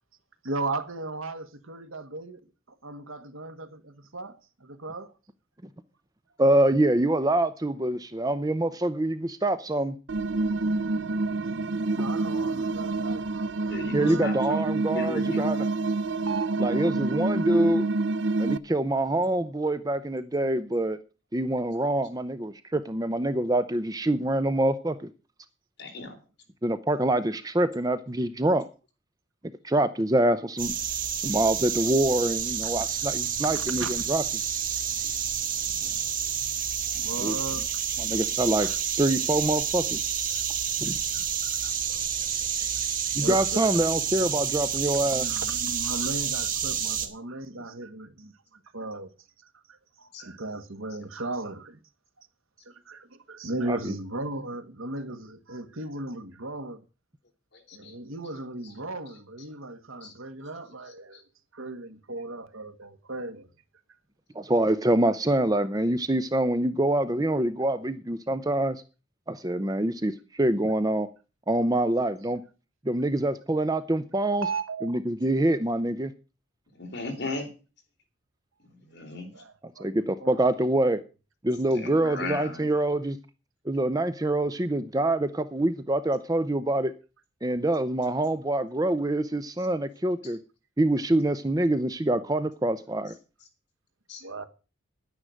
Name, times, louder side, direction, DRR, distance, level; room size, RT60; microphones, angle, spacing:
voice 1, 0.4-2.4 2.8-5.1 11.9-14.3 16.3-16.7 33.5-33.9 36.8-37.7 38.6-38.8 41.1-42.0 42.3-42.7 43.2-43.7 45.1-49.1 49.7-51.8 52.2-52.3 52.6-56.8 57.7-61.2 61.5-63.5 69.6-69.7 74.4-74.9 79.3-79.9 80.2-80.4 81.9-82.0 94.2-94.4, right 2 dB, 80° right, 1.6 m, -37 dB
voice 2, 6.4-10.0 13.9-15.7 16.6-17.8 18.4-21.0 21.3-25.1 26.6-28.7 29.6-30.7 31.2-34.2 37.2-37.4 38.0-38.7 39.0-40.0 40.8-40.9 43.1-45.3 53.7-53.9 64.3-68.8 69.3-71.1 71.5-72.4 72.8-74.5 74.8-76.1 79.8-81.0 81.4-83.2 83.7-86.9 87.4-90.4 90.8-93.2, right 1 dB, 20° right, 0.6 m, -25 dB
sound 1, 10.1-18.6, right 3 dB, 60° right, 0.5 m, -27 dB
voice 3, 13.7-15.5 25.8-26.2 35.6-35.9 41.8-41.9 50.1-50.3 57.5-57.9 58.6-58.7 60.0-60.1 61.1-61.2 76.8-77.5 78.7-79.3 81.7-82.7 94.1-94.2, left 2 dB, 55° left, 3.8 m, -37 dB
sound 2, 30.6-47.1, right 8 dB, 40° right, 1.7 m, -29 dB
10.5 x 9.9 x 6.4 m
head